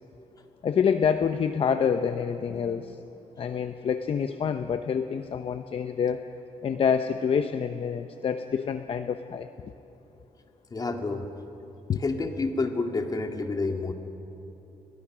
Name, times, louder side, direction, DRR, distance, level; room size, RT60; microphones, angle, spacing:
voice 1, 0.6-2.8 3.4-6.2 6.6-9.5 11.9-12.0, left 7 dB, 55° left, 8 dB, 0.8 m, -27 dB
voice 2, 10.7-11.3 12.0-13.9, left 3 dB, 35° left, 4 dB, 2.4 m, -29 dB
29.5 x 22.5 x 6.3 m, 3.0 s
cardioid pair, 100°, 12 cm